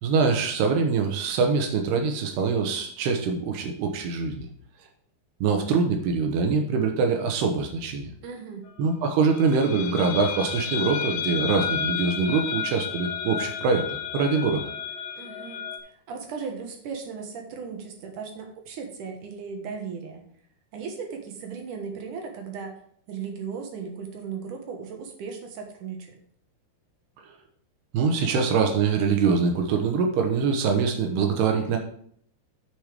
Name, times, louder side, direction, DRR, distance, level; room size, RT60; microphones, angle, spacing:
voice 1, 0.0-4.5 5.4-8.1 8.8-14.6 27.9-31.8, right 5 dB, 80° right, 3 dB, 3.0 m, -24 dB
voice 2, 8.2-8.7 15.2-20.2 20.7-22.8 23.1-26.2, right 5 dB, 65° right, 3 dB, 2.4 m, -37 dB
sound 1, 9.3-15.8, left 8 dB, 70° left, 2.5 m, -32 dB
7.9 x 6.3 x 5.1 m, 0.63 s
omnidirectional pair, 4.7 m